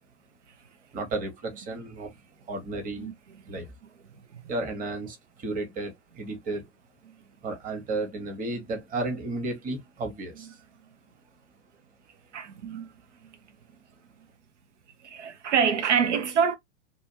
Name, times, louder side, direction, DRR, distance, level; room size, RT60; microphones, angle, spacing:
voice 1, 0.9-2.1 2.5-3.1 3.5-3.7 4.5-6.7 7.4-10.6, right 2 dB, 25° right, 1.1 m, -33 dB
voice 2, 12.3-12.9 15.0-16.6, right 7 dB, 75° right, 0.8 m, -25 dB
2.5 x 2.4 x 2.7 m
hypercardioid pair, 110°, 36 cm